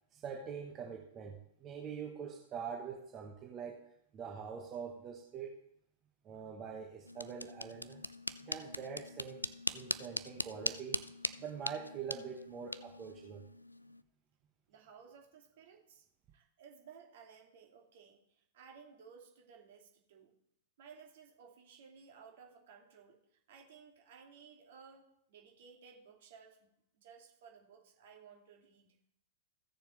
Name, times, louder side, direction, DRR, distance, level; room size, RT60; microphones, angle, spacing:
voice 1, 0.1-5.6 6.2-8.0 8.4-9.5 9.7-11.0 11.4-13.4, right 6 dB, 25° right, 1 dB, 1.1 m, -44 dB
sound 1, 7.0-14.0, left 1 dB, 85° left, 0.3 m, -41 dB
voice 2, 14.7-16.1 16.3-20.3 20.8-26.7 26.9-29.0, right 6 dB, 50° right, 1 dB, 2.2 m, -58 dB
16.0 x 6.8 x 3.2 m, 0.75 s
figure-of-eight pair, 100°, 0 cm